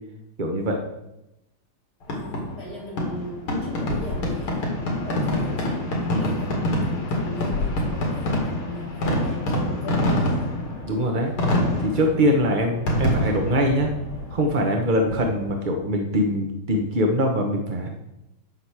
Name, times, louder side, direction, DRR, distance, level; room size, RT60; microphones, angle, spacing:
voice 1, 0.4-0.8 10.8-11.3 11.8-13.9 14.3-17.9, equal, 40° right, 2 dB, 0.7 m, -23 dB
Fireworks, 2.0-15.6, left 1 dB, 80° left, 3.3 m, -26 dB
voice 2, 2.1-10.5, left 2 dB, 50° left, -5 dB, 4.3 m, -37 dB
7.9 x 6.0 x 8.0 m, 0.89 s
omnidirectional pair, 2.3 m